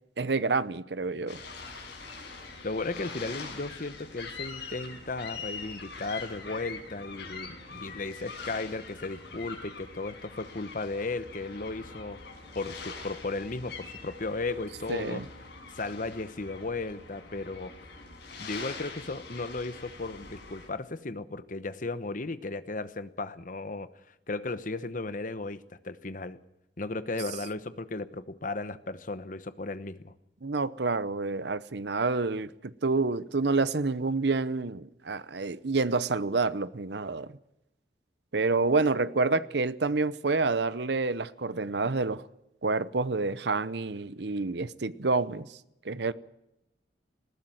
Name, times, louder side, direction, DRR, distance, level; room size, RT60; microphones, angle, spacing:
voice 1, 0.2-1.4 14.9-15.2 30.4-37.3 38.3-42.3 42.6-45.6 45.8-46.1, right 3 dB, 65° right, 0.8 m, -28 dB
sound 1, 1.3-20.7, left 4 dB, 65° left, 6.1 m, -43 dB
voice 2, 2.6-12.2 12.5-15.2 15.7-17.7 18.4-23.9 24.3-26.4 26.8-30.1, left 3 dB, 45° left, 1.0 m, -35 dB
20.0 x 15.0 x 9.2 m
head